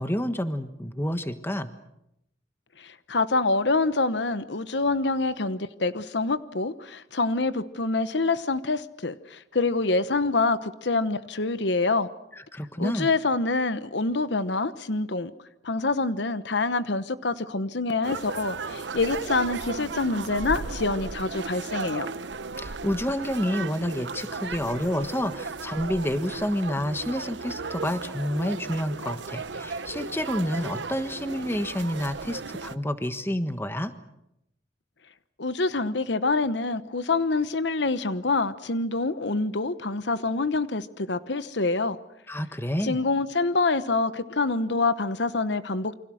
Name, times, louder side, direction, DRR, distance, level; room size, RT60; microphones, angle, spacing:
voice 1, 0.0-1.7 12.5-13.1 22.6-33.9 42.3-43.0, equal, 15° left, 1.4 m, -29 dB
voice 2, 2.8-12.1 12.8-15.3 15.6-22.1 35.4-42.0 42.8-46.0, left 3 dB, 70° left, 1.0 m, -26 dB
sound 1, 18.0-32.8, right 4 dB, 75° right, 1.0 m, -35 dB
29.0 x 25.0 x 6.4 m
head